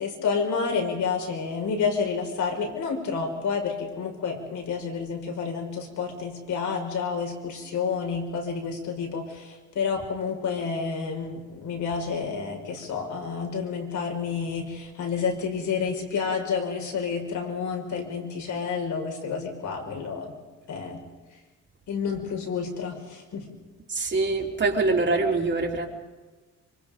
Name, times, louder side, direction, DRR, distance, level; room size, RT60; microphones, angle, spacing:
voice 1, 0.0-20.3 20.7-21.0 21.9-23.5, left 5 dB, 75° left, 2 dB, 5.9 m, -29 dB
voice 2, 23.9-25.9, right 3 dB, 35° right, 0 dB, 4.1 m, -24 dB
26.0 x 25.0 x 5.3 m, 1.3 s
cardioid pair, 90°, 30 cm